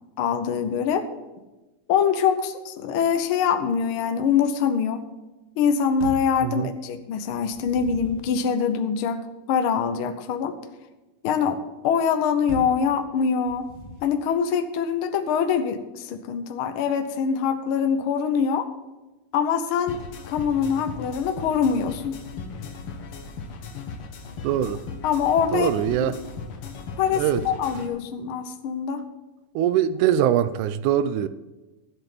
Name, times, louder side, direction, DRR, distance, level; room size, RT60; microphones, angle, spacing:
voice 1, 0.2-1.1 1.9-5.0 5.6-10.6 11.2-11.6 11.8-13.7 14.0-18.7 19.3-22.2 25.0-25.7 27.0-29.0, left 7 dB, 75° left, 8 dB, 1.2 m, -24 dB
sound 1, 6.0-6.4 7.3-8.3 12.5-12.9 13.4-14.2, left 1 dB, 30° right, 1.5 m, -38 dB
voice 2, 6.4-6.7 24.4-24.8 25.5-26.2 27.1-27.4 29.6-31.3, right 10 dB, 80° right, 14 dB, 2.0 m, -22 dB
sound 2, 19.9-27.9, left 4 dB, 55° left, 1.7 m, -37 dB
13.0 x 7.9 x 6.0 m, 1.1 s
omnidirectional pair, 3.7 m